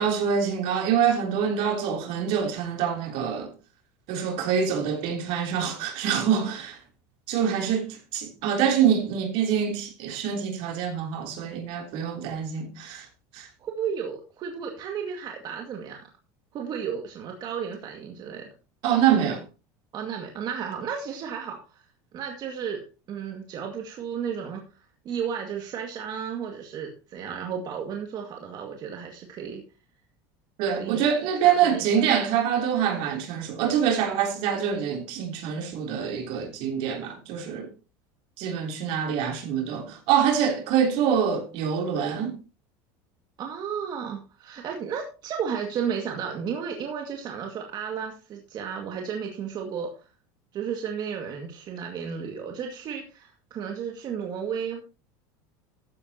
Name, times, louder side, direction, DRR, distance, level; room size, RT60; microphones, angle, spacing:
voice 1, 0.0-3.5 4.1-6.8 7.3-13.1 13.3-13.5 18.8-19.4 30.6-37.7 38.4-42.3, right 8 dB, 65° right, 3.4 m, -25 dB
voice 2, 13.6-16.1 16.5-18.5 19.9-21.9 22.1-22.8 23.1-24.6 25.1-29.6 30.7-31.1 31.4-32.0 43.4-50.1 50.5-54.8, right 7 dB, 45° right, 2.1 m, -33 dB
14.0 x 9.5 x 2.9 m
supercardioid pair, 120°, 10 cm